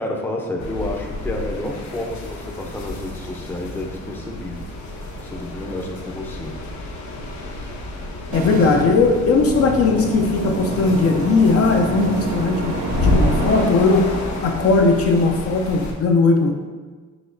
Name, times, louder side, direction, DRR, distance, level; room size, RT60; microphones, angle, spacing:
voice 1, 0.0-4.7 5.0-6.6, left 1 dB, 5° left, 0 dB, 0.6 m, -30 dB
sound 1, 0.6-15.9, left 1 dB, 65° left, 0.9 m, -29 dB
voice 2, 8.3-12.8 13.0-14.0 14.4-16.5, left 3 dB, 50° left, 2 dB, 0.5 m, -18 dB
sound 2, 8.3-13.7, right 5 dB, 70° right, 0.4 m, -29 dB
6.0 x 2.7 x 2.6 m, 1.4 s
cardioid pair, 90°, 30 cm